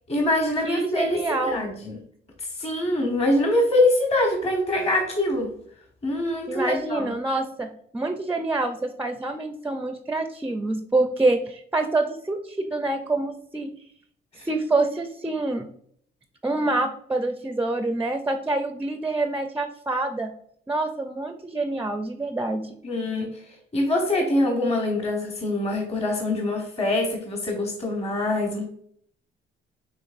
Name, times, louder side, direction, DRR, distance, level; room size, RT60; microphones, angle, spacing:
voice 1, 0.1-2.0 2.6-5.5 6.0-7.1 14.4-14.5 22.8-28.7, left 1 dB, 30° left, 2 dB, 1.0 m, -24 dB
voice 2, 0.6-1.6 6.5-13.7 14.4-15.7 16.4-20.3 20.7-22.7, right 2 dB, 10° right, 6 dB, 0.4 m, -26 dB
5.9 x 3.3 x 2.5 m, 0.64 s
cardioid pair, 90°, 20 cm